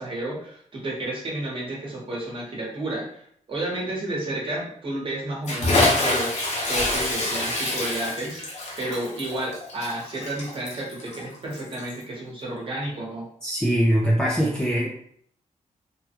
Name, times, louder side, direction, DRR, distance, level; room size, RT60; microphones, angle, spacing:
voice 1, 0.0-6.3 6.7-13.3, right 1 dB, 40° right, -4 dB, 1.0 m, -31 dB
Bathtub (filling or washing) / Splash splatter, 5.4-12.0, left 2 dB, 55° left, 0.8 m, -26 dB
voice 2, 13.4-15.0, equal, 5° left, -4 dB, 0.4 m, -22 dB
3.3 x 2.2 x 2.9 m, 0.64 s
wide cardioid pair, 170°, 13 cm